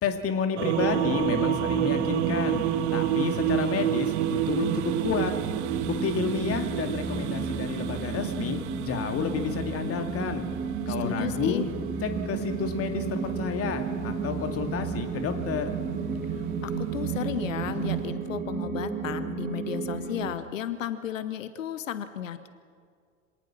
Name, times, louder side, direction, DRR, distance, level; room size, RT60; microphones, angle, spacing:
voice 1, 0.0-2.6 2.9-5.3 5.9-10.5 10.9-11.6 12.0-15.7, left 6 dB, 35° left, 6 dB, 2.4 m, -30 dB
sound 1, 0.6-18.1, right 13 dB, 55° right, 0.9 m, -31 dB
sound 2, 0.7-20.4, right 4 dB, 20° right, 1.7 m, -34 dB
voice 2, 10.9-11.7 16.3-22.5, left 9 dB, 75° left, 13 dB, 1.0 m, -34 dB
26.5 x 18.5 x 6.1 m, 2.1 s
figure-of-eight pair, 80°, 39 cm